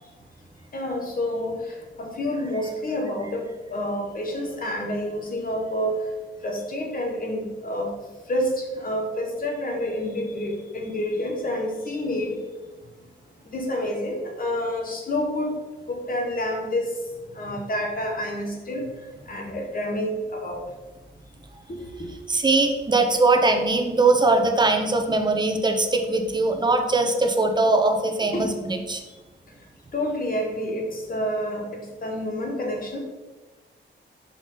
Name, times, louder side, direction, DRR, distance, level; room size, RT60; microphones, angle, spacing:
voice 1, 0.7-6.1 6.4-7.9 8.3-12.4 13.5-15.5 15.9-16.9 17.3-18.8 19.3-20.6 21.7-22.1 28.3-28.5 29.9-33.0, left 1 dB, 45° left, 1 dB, 1.4 m, -28 dB
voice 2, 22.3-29.0, right 2 dB, 20° right, 4 dB, 0.8 m, -21 dB
5.9 x 5.1 x 3.8 m, 1.2 s
wide cardioid pair, 120°, 20 cm